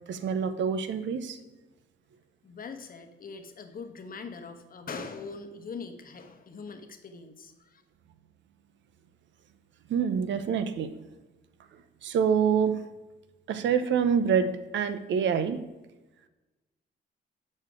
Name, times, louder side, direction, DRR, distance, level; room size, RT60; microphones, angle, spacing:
voice 1, 0.1-1.4 9.9-10.9 12.0-12.8 13.5-15.6, right 7 dB, 70° right, 10 dB, 0.8 m, -26 dB
voice 2, 2.4-7.8, left 4 dB, 45° left, 7 dB, 1.2 m, -42 dB
8.8 x 6.5 x 3.7 m, 1.1 s
cardioid pair, 90°, 20 cm